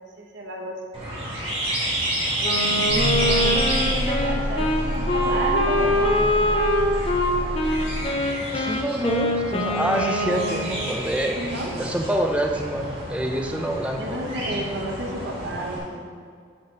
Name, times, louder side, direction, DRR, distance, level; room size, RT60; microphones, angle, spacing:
voice 1, 0.2-0.7 3.2-6.6 11.3-11.7 14.0-16.1, right 1 dB, 80° right, 0 dB, 1.2 m, -31 dB
sound 1, 0.9-15.8, right 1 dB, 30° right, 1.8 m, -30 dB
Wind instrument woodwind instrument, 2.4-10.9, left 1 dB, 30° left, 0.7 m, -24 dB
voice 2, 2.6-3.2 8.5-11.4 11.8-14.2, right 1 dB, 5° right, 2 dB, 0.4 m, -27 dB
sound 2, 2.9-8.0, equal, 65° left, 1.7 m, -28 dB
6.0 x 4.4 x 6.0 m, 2.1 s
head